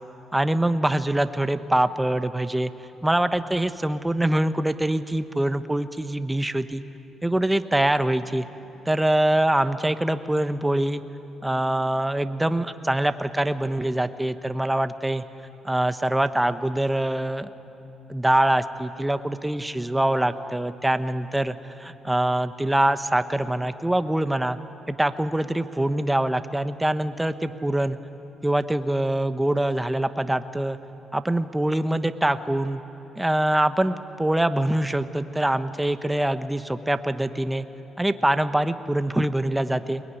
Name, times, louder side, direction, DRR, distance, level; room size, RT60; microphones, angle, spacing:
voice 1, 0.3-2.7 3.0-6.8 7.2-8.5 8.9-11.0 11.4-15.2 15.6-17.5 18.1-21.5 22.0-24.6 24.9-28.0 28.4-30.8 31.1-32.8 33.2-37.7 38.0-40.0, right 1 dB, 10° right, 10 dB, 1.0 m, -24 dB
22.5 x 21.0 x 9.9 m, 2.9 s
cardioid pair, 90°, 0 cm